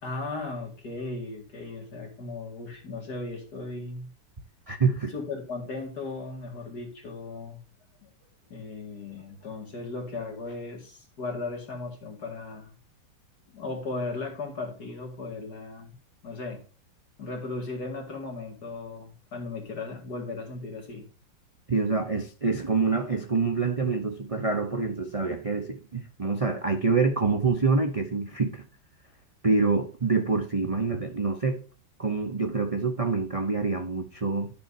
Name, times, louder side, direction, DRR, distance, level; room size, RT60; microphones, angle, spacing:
voice 1, 0.0-4.1 5.1-7.6 8.0-8.1 8.5-12.7 13.5-16.0 16.2-16.6 17.2-21.1, left 3 dB, 55° left, 2.5 m, -36 dB
voice 2, 4.7-5.1 21.7-28.6 29.4-31.6 32.0-34.5, right 4 dB, 35° right, 0.5 m, -26 dB
12.0 x 6.8 x 2.7 m
omnidirectional pair, 2.1 m